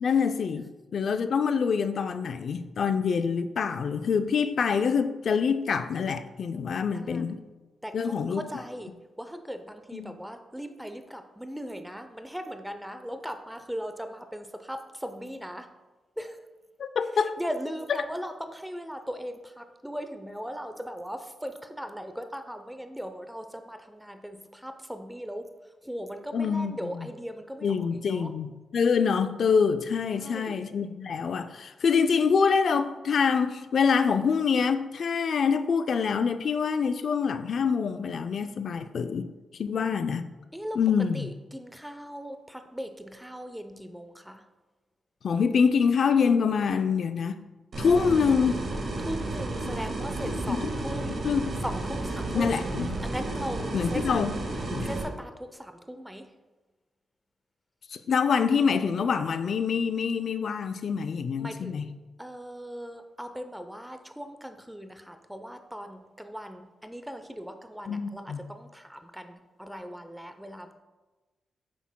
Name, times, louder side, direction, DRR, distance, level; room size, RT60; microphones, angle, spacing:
voice 1, 0.0-7.4 7.9-8.4 9.9-10.1 16.8-17.4 26.3-27.1 27.6-39.3 39.6-40.3 40.8-41.3 45.2-47.4 47.8-48.6 50.3-50.6 51.2-51.6 52.3-52.9 53.7-54.3 54.7-54.9 57.9-61.9 67.9-68.4, left 6 dB, 65° left, 10 dB, 0.4 m, -25 dB
voice 2, 6.9-7.3 7.8-15.7 16.2-16.4 17.1-28.3 30.1-30.6 40.5-40.8 41.1-44.4 49.0-51.3 51.6-52.5 53.0-54.0 54.8-56.3 61.4-61.9 62.2-70.7, equal, 5° right, 8 dB, 0.6 m, -39 dB
sound 1, 47.7-55.0, right 2 dB, 55° right, 1.6 m, -32 dB
8.4 x 5.8 x 2.2 m, 1.2 s
cardioid pair, 75°, 0 cm